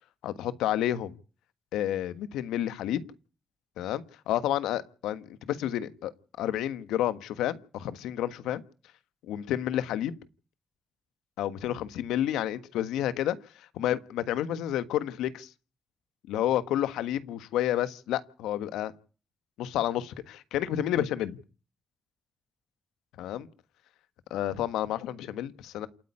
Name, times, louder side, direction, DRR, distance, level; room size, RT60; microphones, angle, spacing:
voice 1, 0.2-1.2 1.7-3.0 3.8-6.1 6.4-8.6 9.3-10.1 11.4-13.4 13.7-15.5 16.3-18.9 19.6-21.4 23.2-23.5 24.3-25.9, left 12 dB, 85° left, 14 dB, 1.4 m, -30 dB
28.0 x 9.6 x 9.8 m, 0.43 s
hypercardioid pair, 40°, 0 cm